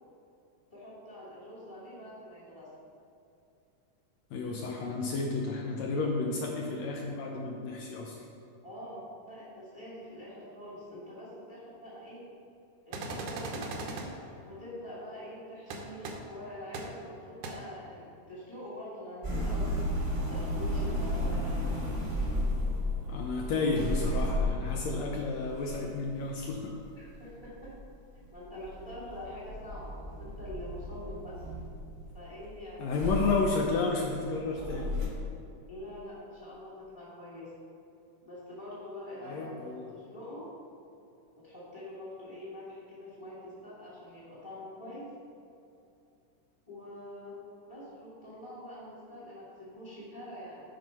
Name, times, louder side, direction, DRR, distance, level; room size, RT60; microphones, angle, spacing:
voice 1, 0.7-2.7 8.6-12.2 12.8-13.6 14.4-19.8 20.1-21.9 23.4-23.5 27.0-27.7 28.3-31.3 32.1-33.1 35.7-37.5 38.2-40.4 41.4-45.1 46.7-47.4 47.6-50.6, left 1 dB, 10° left, -10 dB, 1.1 m, -45 dB
voice 2, 4.3-8.2 23.1-26.8 32.8-35.1 39.2-39.9, left 3 dB, 75° left, 0 dB, 1.6 m, -32 dB
sound 1, 12.9-14.1 15.7-16.1 16.7-16.8 17.4-17.5, right 3 dB, 75° right, 2.2 m, -37 dB
sound 2, 19.2-28.4 28.6-32.4 32.9-35.0, left 1 dB, 20° right, 0.8 m, -33 dB
9.3 x 4.4 x 5.5 m, 2.6 s
omnidirectional pair, 3.7 m